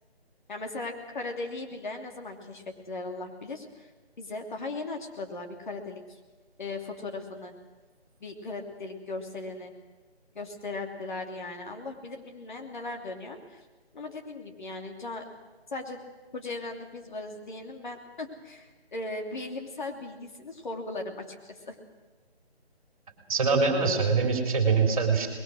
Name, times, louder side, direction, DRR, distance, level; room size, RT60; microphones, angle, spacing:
voice 1, 0.5-3.9 4.2-6.0 6.6-7.5 8.2-9.7 10.3-13.6 13.9-15.2 15.7-16.0 16.3-21.7, left 2 dB, 45° left, 3 dB, 3.0 m, -38 dB
voice 2, 23.3-25.3, right 4 dB, 35° right, 4 dB, 3.9 m, -23 dB
25.5 x 21.0 x 6.4 m, 1.3 s
figure-of-eight pair, 160°, 32 cm